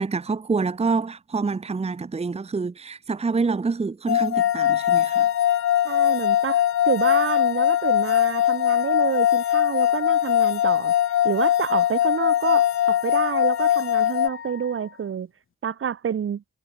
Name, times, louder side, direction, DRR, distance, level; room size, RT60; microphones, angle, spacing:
voice 1, 0.0-5.3, right 4 dB, 20° right, 1.1 m, -26 dB
sound 1, 4.1-14.3, left 11 dB, 65° left, 1.3 m, -21 dB
Wind instrument woodwind instrument, 4.3-15.1, left 8 dB, 45° left, 1.4 m, -38 dB
voice 2, 5.8-10.9 11.2-15.3 15.6-16.4, right 8 dB, 45° right, 1.4 m, -28 dB
cardioid pair, 90°, 30 cm